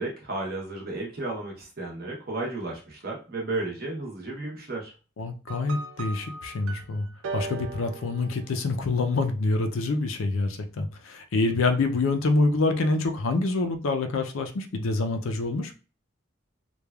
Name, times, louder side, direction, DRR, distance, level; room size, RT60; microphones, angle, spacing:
voice 1, 0.0-4.9, right 2 dB, 50° right, 0.8 m, -33 dB
voice 2, 5.2-7.1 7.3-15.7, left 3 dB, 90° left, 0.5 m, -26 dB
sound 1, 5.5-8.9, right 3 dB, 80° right, 0.4 m, -38 dB
3.1 x 2.2 x 2.3 m
head